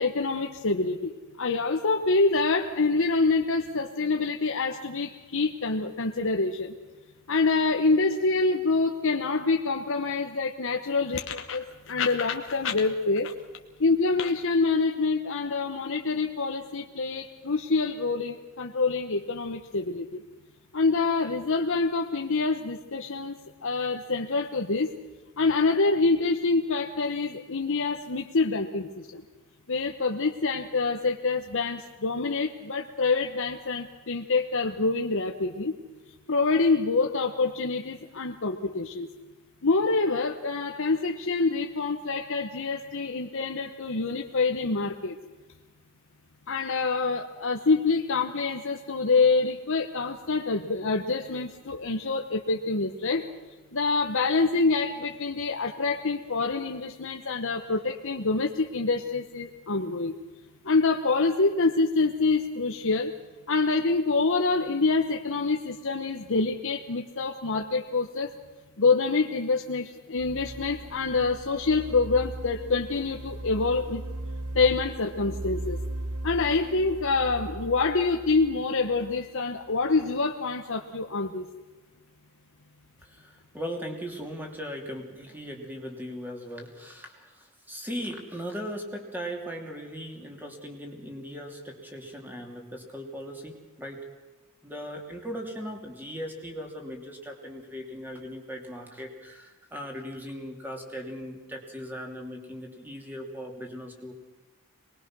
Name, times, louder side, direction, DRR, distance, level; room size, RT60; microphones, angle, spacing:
voice 1, 0.0-6.7 7.3-13.3 13.8-20.2 20.7-24.9 25.4-29.2 29.7-35.7 36.3-39.1 39.6-45.2 46.5-53.3 53.7-60.1 60.6-63.1 63.5-68.3 68.8-74.0 74.5-75.8 76.2-81.5, left 3 dB, 65° left, 3 dB, 1.1 m, -26 dB
sound 1, 70.2-80.0, right 1 dB, 80° right, 1.0 m, -38 dB
voice 2, 83.0-94.1 94.6-104.1, equal, 10° right, 2 dB, 2.9 m, -38 dB
24.0 x 20.5 x 6.2 m, 1.3 s
head